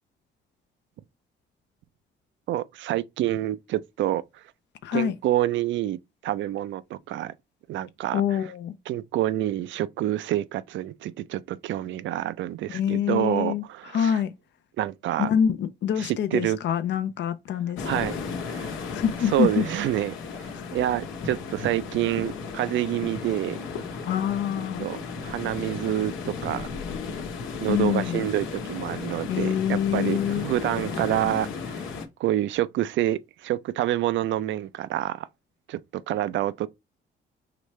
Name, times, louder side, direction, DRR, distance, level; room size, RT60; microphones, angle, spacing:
voice 1, 2.5-4.4 4.9-6.0 6.2-7.3 7.7-8.2 8.9-14.2 14.8-15.3 16.0-16.6 17.8-18.2 18.4-18.8 19.3-23.6 24.8-25.0 25.2-26.7 27.6-31.9 32.2-35.3 35.7-36.7, right 13 dB, 70° right, 0.4 m, -27 dB
voice 2, 4.8-5.1 8.1-8.7 12.7-14.3 15.2-18.0 18.9-19.6 20.5-20.6 24.1-24.9 27.7-28.2 29.3-30.5, left 9 dB, 65° left, 0.5 m, -26 dB
sound 1, 17.8-32.1, left 5 dB, 85° left, 1.0 m, -35 dB
5.0 x 3.1 x 3.1 m
cardioid pair, 90°, 20 cm